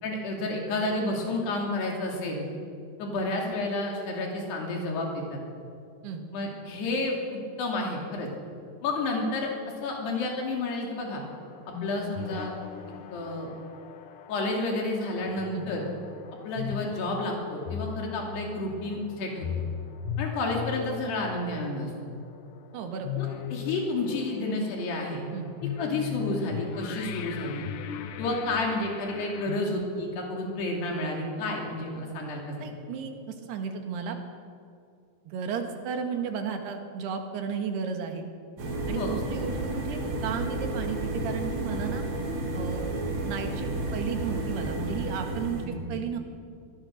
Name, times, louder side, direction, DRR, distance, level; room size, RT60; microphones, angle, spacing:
voice 1, 0.0-2.4 3.0-5.4 6.3-8.3 8.8-9.5 9.8-11.2 11.7-12.5 13.1-13.5 14.3-15.9 16.5-19.5 20.2-21.9 23.2-25.2 25.8-27.7 28.2-32.7 38.9-39.2 45.6-45.8, left 2 dB, 90° left, 0 dB, 5.0 m, -30 dB
sound 1, 11.2-29.6, left 8 dB, 70° left, 2.2 m, -38 dB
voice 2, 22.7-23.1 25.3-25.5 32.6-34.2 35.3-38.3 38.9-42.0 42.6-42.9 43.2-45.6 45.9-46.2, right 6 dB, 80° right, 4 dB, 3.8 m, -34 dB
sound 2, 38.6-45.6, right 2 dB, 60° right, 4.8 m, -31 dB
22.5 x 18.0 x 6.5 m, 2.3 s
omnidirectional pair, 4.6 m